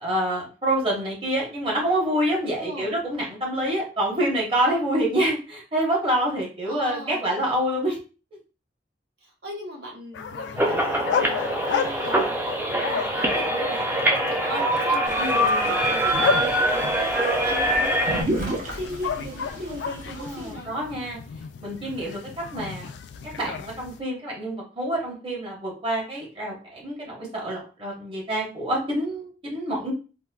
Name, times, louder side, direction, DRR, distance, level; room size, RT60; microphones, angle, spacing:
voice 1, 0.0-8.0 15.2-16.1 20.1-21.2 21.6-22.9 23.4-29.9, right 1 dB, 30° right, -2 dB, 1.1 m, -27 dB
voice 2, 2.6-2.9 6.6-7.3 9.2-14.0 14.3-20.7, equal, 70° right, -2 dB, 1.2 m, -38 dB
sound 1, 10.1-24.0, left 6 dB, 80° left, 0.3 m, -33 dB
sound 2, 10.6-18.2, right 1 dB, 15° right, 0.4 m, -23 dB
sound 3, 15.1-20.5, right 1 dB, 50° right, 0.8 m, -34 dB
4.1 x 2.2 x 2.3 m, 0.34 s
head